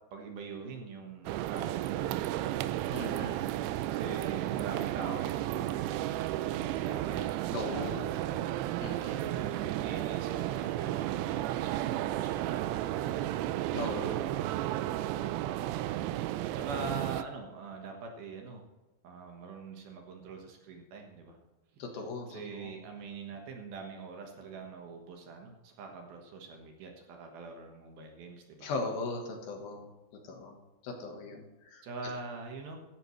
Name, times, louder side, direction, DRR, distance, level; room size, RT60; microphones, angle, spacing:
voice 1, 0.1-2.6 3.9-7.9 8.2-8.4 9.1-13.3 14.3-14.4 16.5-18.6 19.0-21.4 22.3-28.7 31.8-32.8, right 4 dB, 65° right, 3 dB, 3.0 m, -44 dB
sound 1, 1.3-17.2, right 13 dB, 85° right, 2.6 m, -33 dB
voice 2, 2.9-3.4 7.5-8.1 8.8-9.2 13.7-14.3 21.8-22.7 28.6-29.9 30.2-30.6 30.8-31.8, left 3 dB, 65° left, 2 dB, 3.0 m, -38 dB
16.5 x 13.5 x 3.2 m, 1.1 s
omnidirectional pair, 5.0 m